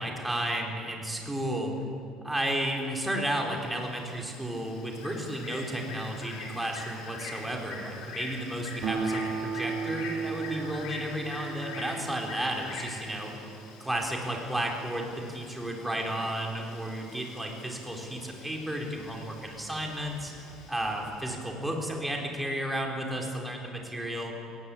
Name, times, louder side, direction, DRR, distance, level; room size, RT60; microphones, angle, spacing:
voice 1, 0.0-1.7 2.2-13.3 13.8-20.3 20.7-24.3, right 1 dB, 10° right, 1 dB, 4.5 m, -33 dB
Bird, 2.9-21.7, left 4 dB, 85° left, 4.8 m, -45 dB
Acoustic guitar, 8.8-13.7, right 5 dB, 60° right, 3.5 m, -35 dB
20.5 x 19.0 x 8.8 m, 2.6 s
cardioid pair, 110°, 0 cm